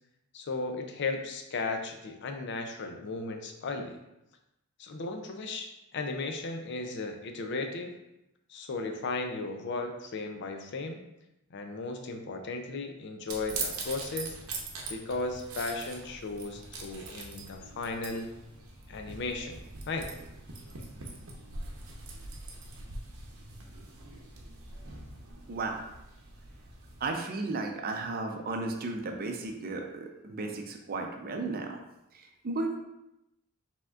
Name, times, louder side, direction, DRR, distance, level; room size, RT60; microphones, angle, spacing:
voice 1, 0.3-4.0 4.8-7.9 8.5-11.0 11.5-14.4 14.9-18.3 18.9-19.6 19.9-20.1, left 3 dB, 55° left, 5 dB, 0.5 m, -35 dB
sound 1, 13.3-27.1, right 3 dB, 75° right, 0.8 m, -42 dB
voice 2, 25.5-25.9 27.0-31.8 32.1-32.8, right 3 dB, 45° right, 3 dB, 0.5 m, -34 dB
4.9 x 3.6 x 2.4 m, 0.87 s
head